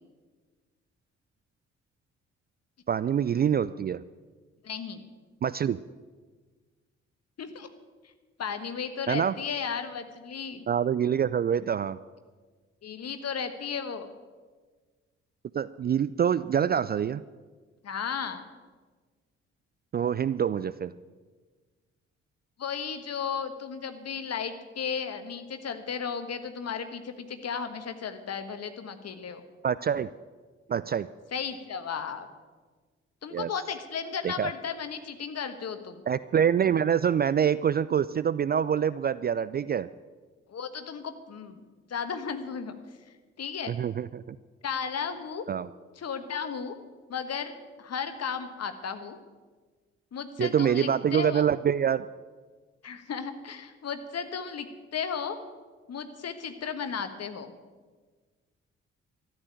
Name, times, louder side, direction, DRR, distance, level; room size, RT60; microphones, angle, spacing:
voice 1, 2.9-4.0 5.4-5.8 9.1-9.3 10.7-12.0 15.5-17.2 19.9-20.9 29.6-30.1 30.7-31.1 33.3-33.5 34.2-34.5 36.1-39.9 43.7-44.4 45.5-45.7 50.4-52.1, right 8 dB, 30° right, 16 dB, 0.4 m, -26 dB
voice 2, 4.6-5.0 7.4-7.7 8.4-10.6 12.8-14.1 17.8-18.4 22.6-29.4 31.3-32.3 33.2-36.0 40.5-41.6 41.9-42.7 43.4-43.7 44.6-45.4 46.0-46.7 47.1-49.2 50.1-51.5 52.8-55.4 55.9-57.5, left 6 dB, 45° left, 9 dB, 1.5 m, -34 dB
13.5 x 8.9 x 9.0 m, 1.4 s
figure-of-eight pair, 40°, 34 cm